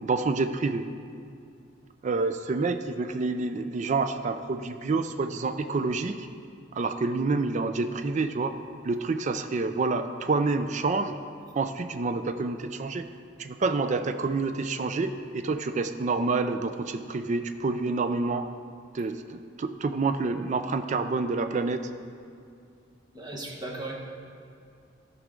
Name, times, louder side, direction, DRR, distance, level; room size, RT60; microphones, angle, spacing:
voice 1, 0.0-0.9 2.0-6.3 6.7-8.5 8.8-11.2 11.5-13.1 13.4-18.5 18.9-21.9, right 3 dB, 40° right, 9 dB, 0.3 m, -28 dB
voice 2, 23.1-23.9, right 2 dB, 20° right, -2 dB, 1.1 m, -36 dB
13.0 x 6.0 x 3.7 m, 2.4 s
head